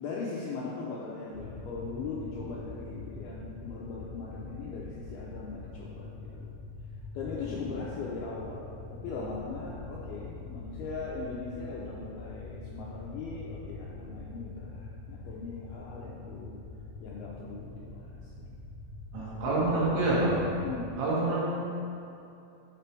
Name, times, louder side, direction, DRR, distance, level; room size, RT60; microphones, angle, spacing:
voice 1, 0.0-6.1 6.3-6.5 7.1-16.6 17.0-18.6 19.1-20.0 20.6-21.0, left 4 dB, 85° left, -5 dB, 2.2 m, -39 dB
sound 1, 1.3-20.9, left 3 dB, 60° right, 2.4 m, -44 dB
voice 2, 19.1-20.4 21.0-21.5, right 2 dB, 75° right, -7 dB, 4.0 m, -27 dB
10.0 x 5.9 x 3.4 m, 2.7 s
omnidirectional pair, 5.3 m